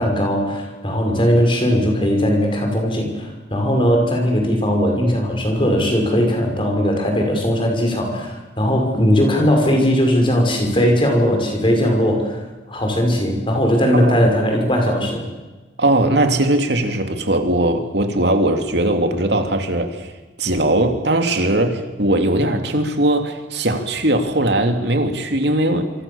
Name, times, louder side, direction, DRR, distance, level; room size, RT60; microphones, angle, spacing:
voice 1, 0.0-15.2, equal, 25° left, 6.0 m, -18 dB
voice 2, 15.8-20.1 20.4-25.9, right 1 dB, 60° right, 3.0 m, -19 dB
26.5 x 26.5 x 7.2 m
head